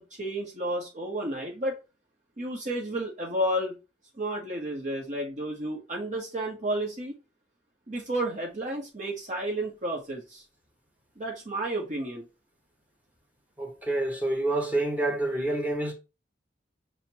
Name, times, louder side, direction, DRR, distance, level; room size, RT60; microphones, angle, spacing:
voice 1, 0.0-1.8 2.4-3.8 4.2-7.2 7.9-10.4 11.2-12.2, right 1 dB, 45° right, 1.0 m, -31 dB
voice 2, 13.6-15.9, right 2 dB, 10° right, 1.0 m, -28 dB
6.4 x 2.1 x 2.8 m
head